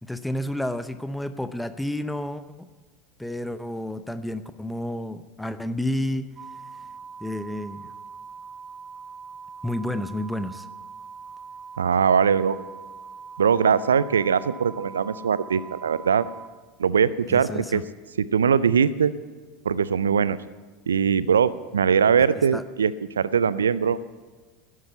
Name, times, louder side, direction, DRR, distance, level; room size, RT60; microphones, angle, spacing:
voice 1, 0.0-2.7 3.2-6.3 7.2-7.9 9.6-10.7 17.3-17.8 22.5-22.6, left 1 dB, 5° left, 12 dB, 0.7 m, -30 dB
sound 1, 6.4-16.5, right 5 dB, 30° right, 0.9 m, -42 dB
voice 2, 11.8-12.6 13.4-16.3 16.8-17.8 18.2-19.1 19.6-20.4 20.9-24.0, right 7 dB, 75° right, 18 dB, 0.4 m, -21 dB
11.5 x 9.6 x 8.0 m, 1.3 s
figure-of-eight pair, 80°, 0 cm